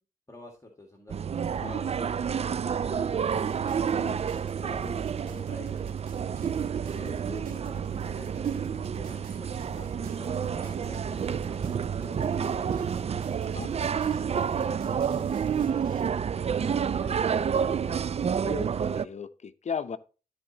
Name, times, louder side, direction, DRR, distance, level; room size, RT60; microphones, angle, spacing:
voice 1, 0.3-1.4 1.6-2.4 2.8-3.6 4.4-5.9 6.7-15.7 17.0-18.1, left 1 dB, 20° left, 1.8 m, -48 dB
sound 1, 1.1-19.1, right 7 dB, 45° right, 0.4 m, -29 dB
sound 2, 3.3-16.1, right 8 dB, 85° right, 1.2 m, -48 dB
voice 2, 18.4-20.0, left 6 dB, 55° left, 0.7 m, -36 dB
13.0 x 4.3 x 2.8 m
cardioid pair, 50°, 14 cm